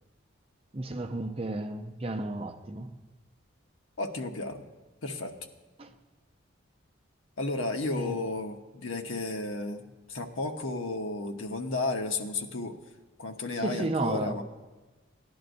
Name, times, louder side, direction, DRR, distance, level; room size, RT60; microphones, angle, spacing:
voice 1, 0.7-2.9 5.8-5.9 7.9-8.2 13.6-14.4, right 2 dB, 30° right, 0.7 m, -33 dB
voice 2, 4.0-4.6 5.0-5.3 7.4-12.7 13.2-14.4, left 2 dB, 75° left, 1.0 m, -33 dB
17.0 x 11.0 x 2.6 m
head